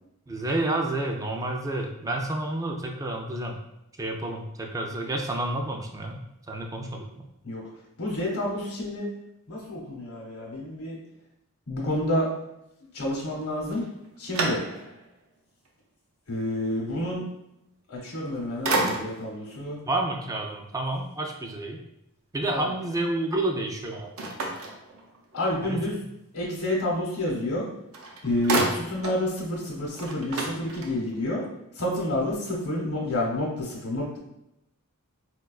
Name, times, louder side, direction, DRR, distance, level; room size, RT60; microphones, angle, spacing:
voice 1, 0.3-3.6 4.0-7.3 19.9-21.8 22.3-24.1 25.6-26.1, right 2 dB, 15° right, 2 dB, 0.3 m, -30 dB
voice 2, 8.0-9.1 9.5-11.0 11.7-12.3 12.9-13.8 14.2-14.6 16.3-17.2 17.9-19.8 22.5-22.6 25.3-25.9 26.3-27.7 28.2-31.4 31.8-34.2, left 1 dB, 75° left, -2 dB, 0.8 m, -29 dB
sound 1, 13.7-15.1 15.7-15.8 18.0-18.3 18.6-19.4 24.2-25.4 27.5-27.6 27.9-29.3 29.6-29.7 29.9-31.2, right 2 dB, 70° right, 0.5 m, -30 dB
4.2 x 2.2 x 2.3 m, 0.86 s
head